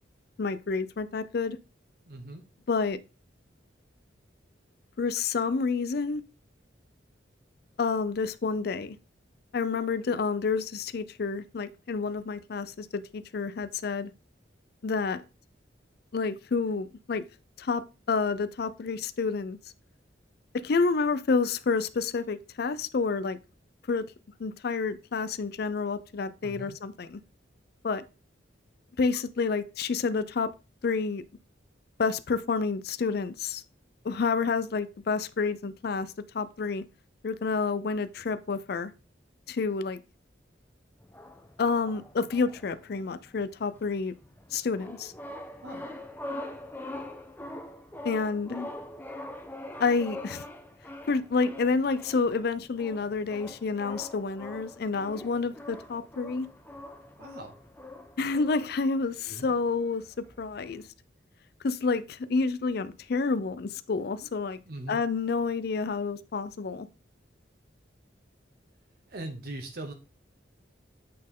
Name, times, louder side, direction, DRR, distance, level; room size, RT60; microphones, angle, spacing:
voice 1, 0.4-1.6 2.7-3.0 5.0-6.2 7.8-9.0 9.5-14.1 14.8-15.2 16.1-17.2 17.6-17.8 18.1-19.6 20.6-23.4 23.9-24.0 24.4-27.2 27.8-28.0 29.0-30.5 30.8-31.2 32.0-33.6 34.0-36.1 36.3-36.8 37.2-38.9 39.5-40.0 41.6-44.1 44.5-45.1 48.0-48.7 49.8-50.4 51.1-56.5 58.2-60.0 60.4-60.8 61.6-64.6 64.9-66.9, left 4 dB, 55° left, 0.4 m, -29 dB
voice 2, 2.1-2.4 26.4-26.8 45.6-45.9 57.2-57.5 59.2-59.5 64.7-65.0 69.1-69.9, right 2 dB, 55° right, 0.9 m, -40 dB
sound 1, 41.0-60.9, left 1 dB, 10° left, 0.8 m, -44 dB
8.5 x 4.3 x 3.6 m
head